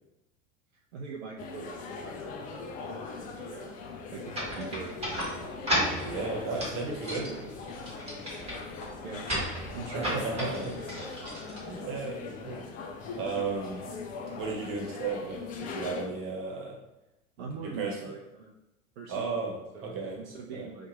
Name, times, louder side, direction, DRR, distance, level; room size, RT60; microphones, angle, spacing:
voice 1, 0.9-3.8 4.1-4.9 7.3-7.4 9.0-11.1 17.4-18.5 19.0-19.4 19.7-20.9, right 4 dB, 60° right, -1 dB, 0.6 m, -43 dB
sound 1, 1.4-16.1, left 4 dB, 25° left, 0.3 m, -41 dB
sound 2, 4.3-12.2, equal, 15° right, 1.4 m, -35 dB
voice 2, 6.0-7.5 9.9-10.8 11.7-12.6 13.1-13.9 14.4-16.8 17.6-18.0 19.1-20.2 20.5-20.7, right 4 dB, 35° right, -2 dB, 1.2 m, -34 dB
2.9 x 2.5 x 4.2 m, 0.90 s
figure-of-eight pair, 85°, 39 cm